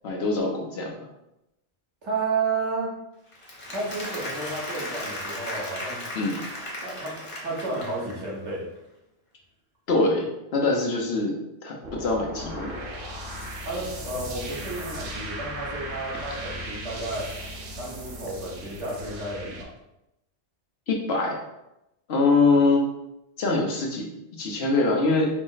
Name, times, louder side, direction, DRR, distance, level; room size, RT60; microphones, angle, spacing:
voice 1, 0.0-1.1 6.1-6.4 9.9-11.4 11.6-12.7 20.9-21.4 22.1-22.8 23.4-25.3, left 3 dB, 65° left, 0 dB, 1.0 m, -24 dB
voice 2, 2.0-2.9 3.7-6.1 6.8-8.7 13.6-17.3 17.8-19.7, right 3 dB, 85° right, -4 dB, 1.5 m, -32 dB
Applause, 3.3-8.4, left 1 dB, 30° left, 0.9 m, -36 dB
sound 1, 11.8-19.6, equal, 55° right, 0.8 m, -37 dB
4.9 x 2.1 x 3.9 m, 0.89 s
omnidirectional pair, 1.1 m